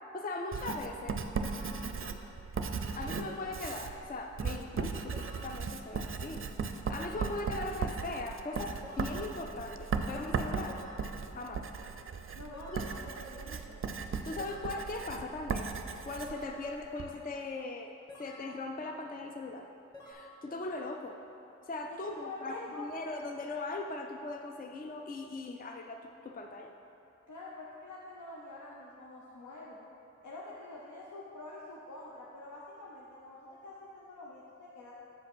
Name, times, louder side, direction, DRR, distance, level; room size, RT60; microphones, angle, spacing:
voice 1, 0.1-1.2 2.9-6.4 6.9-10.8 11.3-11.7 12.7-12.8 14.2-15.7 16.0-17.9 18.2-19.7 20.0-21.2 21.7-26.7, left 2 dB, 30° left, 4 dB, 0.4 m, -39 dB
Writing, 0.5-17.1, right 5 dB, 45° right, 0.5 m, -37 dB
sound 1, 1.4-1.8 3.3-3.7 5.1-5.5 7.0-7.4 8.8-9.2 10.7-11.1 12.5-12.9 14.4-14.8 16.2-16.6 18.1-18.5 19.9-20.1, left 1 dB, 15° left, 1.5 m, -49 dB
voice 2, 12.3-13.8 22.0-23.0 27.3-29.8 30.2-34.9, left 2 dB, 80° left, -5 dB, 0.9 m, -46 dB
7.4 x 5.1 x 6.1 m, 2.9 s
wide cardioid pair, 90°, 29 cm